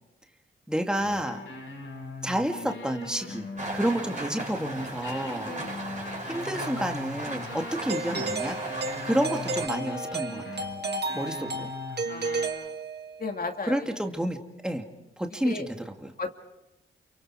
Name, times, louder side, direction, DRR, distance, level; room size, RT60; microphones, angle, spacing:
voice 1, 0.7-1.4 2.2-3.5 3.7-5.5 6.2-10.7 11.1-11.7 13.6-14.4 14.6-14.9 15.2-16.1, right 1 dB, 5° right, 4 dB, 2.3 m, -30 dB
sound 1, 1.0-12.5, left 3 dB, 80° left, 5.8 m, -41 dB
Rain, 3.6-9.7, right 2 dB, 35° right, 6.1 m, -36 dB
Doorbell, 7.9-13.3, right 3 dB, 50° right, 1.9 m, -33 dB
voice 2, 12.1-12.7 13.2-13.9 15.4-15.7 16.2-16.3, left 3 dB, 45° left, 4 dB, 2.5 m, -35 dB
28.5 x 25.0 x 4.9 m, 0.93 s
cardioid pair, 55°, 21 cm